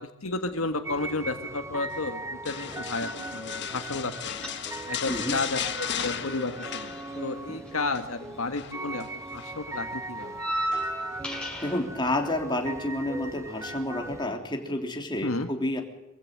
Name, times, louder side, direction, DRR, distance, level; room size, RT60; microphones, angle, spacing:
voice 1, 0.0-4.5 4.9-9.0 9.3-10.4 15.2-15.5, left 3 dB, 80° left, 7 dB, 1.8 m, -32 dB
sound 1, 0.8-14.3, right 2 dB, 15° right, 1.1 m, -39 dB
sound 2, 2.5-7.5 7.7-8.1 8.5-9.6 10.7-11.2 11.7-11.8, left 8 dB, 55° left, 1.5 m, -36 dB
sound 3, 4.3-5.1 5.3-8.7 9.0-11.8, right 1 dB, 5° left, 7.0 m, -36 dB
voice 2, 11.6-15.8, left 1 dB, 20° left, 2 dB, 3.4 m, -30 dB
24.0 x 16.0 x 7.8 m, 1.0 s
head